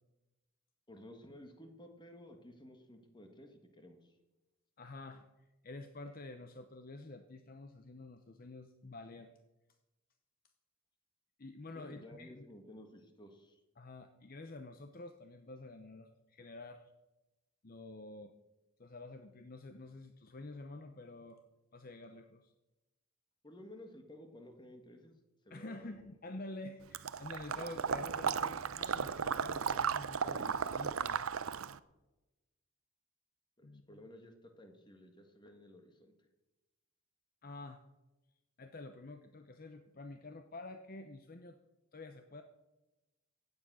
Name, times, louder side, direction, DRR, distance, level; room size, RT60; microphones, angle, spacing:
voice 1, 0.9-4.2 11.7-13.6 23.4-25.2 25.4-26.0 33.6-36.3, left 1 dB, 20° left, 5 dB, 1.7 m, -54 dB
voice 2, 4.8-5.3 5.6-9.3 11.4-12.5 13.8-16.9 17.6-18.3 18.8-21.4 21.7-22.5 25.5-31.2 33.6-34.0 37.4-37.8 38.6-41.6 41.9-42.4, left 2 dB, 40° left, 8 dB, 0.7 m, -49 dB
Water / Liquid, 26.9-31.8, right 6 dB, 70° right, 0.6 m, -35 dB
16.0 x 9.7 x 6.2 m, 1.0 s
head